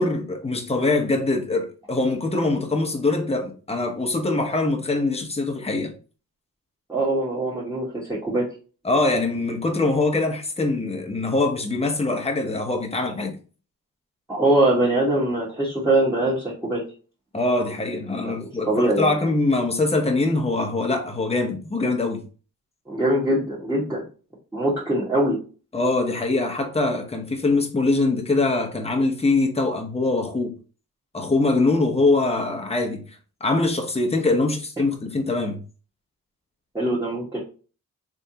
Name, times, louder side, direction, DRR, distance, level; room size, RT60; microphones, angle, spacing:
voice 1, 0.0-5.9 8.8-13.4 17.3-22.3 25.7-30.5 31.1-33.0 33.4-35.6, left 2 dB, 15° left, 0.9 m, -23 dB
voice 2, 6.9-8.5 14.3-16.8 18.2-19.1 22.9-24.0 24.5-25.4 36.7-37.4, right 1 dB, 10° right, 1.5 m, -22 dB
3.5 x 3.4 x 2.8 m
cardioid pair, 65°, 35 cm